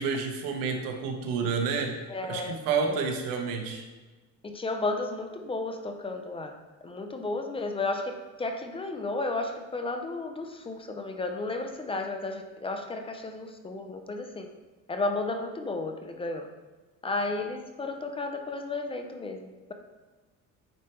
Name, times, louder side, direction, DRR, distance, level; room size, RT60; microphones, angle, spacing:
voice 1, 0.0-2.0 2.3-3.8, right 5 dB, 85° right, 4 dB, 1.1 m, -29 dB
voice 2, 2.1-2.6 2.9-3.0 4.4-6.5 6.8-14.5 14.9-16.5 17.0-19.7, left 2 dB, 15° left, 5 dB, 0.5 m, -33 dB
9.2 x 3.3 x 4.4 m, 1.2 s
cardioid pair, 145°, 34 cm